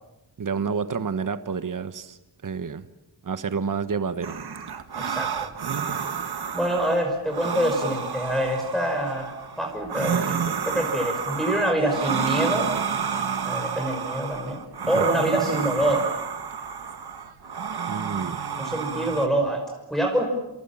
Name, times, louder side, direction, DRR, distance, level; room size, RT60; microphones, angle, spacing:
voice 1, 0.4-2.9 3.2-4.4 15.0-15.1 17.9-18.5, right 5 dB, 50° right, 11 dB, 1.3 m, -29 dB
sound 1, 4.2-19.3, right 6 dB, 65° right, 2.0 m, -30 dB
voice 2, 4.9-5.5 6.5-12.7 13.4-16.1 18.6-20.2, right 1 dB, ahead, 1 dB, 5.9 m, -26 dB
29.0 x 28.0 x 7.4 m, 0.97 s
wide cardioid pair, 105°, 42 cm